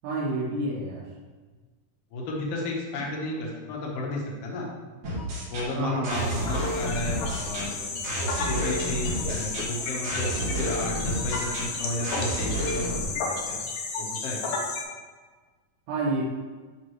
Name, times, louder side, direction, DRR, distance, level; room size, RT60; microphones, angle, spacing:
voice 1, 0.0-1.0 5.7-6.5 15.9-16.2, right 2 dB, 85° right, -5 dB, 2.7 m, -29 dB
voice 2, 2.1-4.7 5.5-7.9 8.4-13.6 14.0-14.4, left 2 dB, 60° left, -2 dB, 1.9 m, -33 dB
sound 1, 5.0-13.0, equal, 55° right, 3.3 m, -31 dB
sound 2, 6.1-14.8, left 4 dB, 85° left, 2.6 m, -33 dB
11.0 x 4.0 x 3.1 m, 1.4 s
omnidirectional pair, 3.7 m